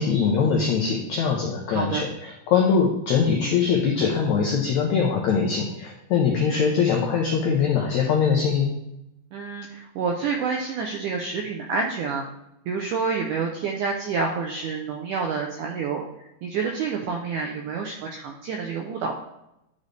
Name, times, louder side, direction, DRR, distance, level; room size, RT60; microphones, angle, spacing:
voice 1, 0.0-8.7, left 6 dB, 85° left, -1 dB, 1.6 m, -22 dB
voice 2, 1.7-2.1 9.3-12.2 12.7-16.0 16.4-19.1, right 5 dB, 90° right, 1 dB, 1.8 m, -28 dB
11.0 x 4.1 x 3.3 m, 0.86 s
omnidirectional pair, 4.4 m